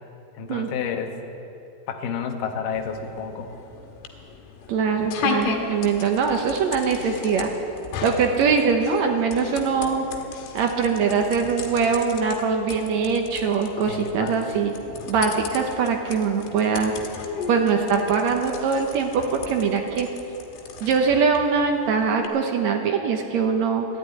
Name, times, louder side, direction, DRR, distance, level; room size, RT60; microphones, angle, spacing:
voice 1, 0.4-1.1 1.9-3.5 13.9-14.3, left 6 dB, 65° left, 4 dB, 2.5 m, -30 dB
sound 1, 2.7-22.3, left 5 dB, 90° left, 3.3 m, -36 dB
voice 2, 4.7-7.5 8.0-10.1 10.5-14.7 15.1-16.9 17.5-20.1 20.8-23.9, right 5 dB, 80° right, 3 dB, 1.6 m, -22 dB
13.0 x 11.5 x 9.3 m, 2.9 s
omnidirectional pair, 4.5 m